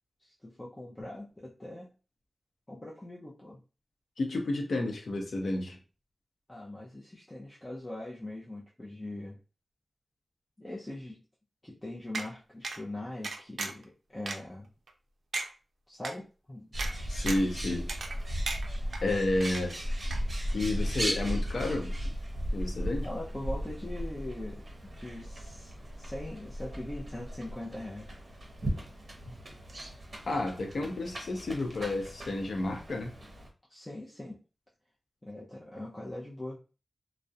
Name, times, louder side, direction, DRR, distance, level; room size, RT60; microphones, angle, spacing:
voice 1, 0.2-1.9 2.7-3.6 6.5-9.4 10.6-11.2 11.6-14.7 15.9-16.7 23.0-24.6 25.0-28.2 33.7-34.4 35.2-36.6, left 1 dB, 20° left, -4 dB, 0.5 m, -41 dB
voice 2, 4.2-5.8 17.1-17.9 19.0-19.8 20.5-21.9 22.5-23.1 30.3-33.1, left 2 dB, 75° left, 3 dB, 0.6 m, -31 dB
sound 1, 12.1-12.3 12.6-12.8 13.2-13.8 14.3-14.4 14.9-15.0 15.3-15.5 16.0-16.1 16.8-16.9 17.3-17.5 17.9-18.2 18.5-19.0 19.4-19.9 20.1-20.2, right 3 dB, 80° right, 0.4 m, -35 dB
Bird, 16.7-33.5, equal, 45° right, 0.7 m, -36 dB
2.3 x 2.0 x 2.6 m, 0.34 s
wide cardioid pair, 90°, 0 cm